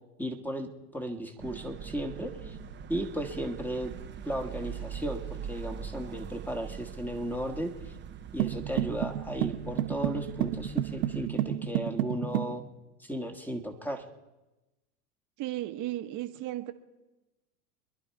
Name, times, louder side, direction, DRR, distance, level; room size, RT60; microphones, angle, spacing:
voice 1, 0.2-2.6 2.9-4.0 4.2-7.9 8.3-12.6 13.0-14.0, equal, 5° left, 4 dB, 1.5 m, -35 dB
sound 1, 1.4-11.3, right 8 dB, 25° right, 0.9 m, -42 dB
sound 2, 8.4-12.6, right 13 dB, 65° right, 1.2 m, -31 dB
voice 2, 15.4-16.7, right 15 dB, 40° right, 8 dB, 1.2 m, -35 dB
25.0 x 11.0 x 4.7 m, 1.1 s
hypercardioid pair, 105°, 47 cm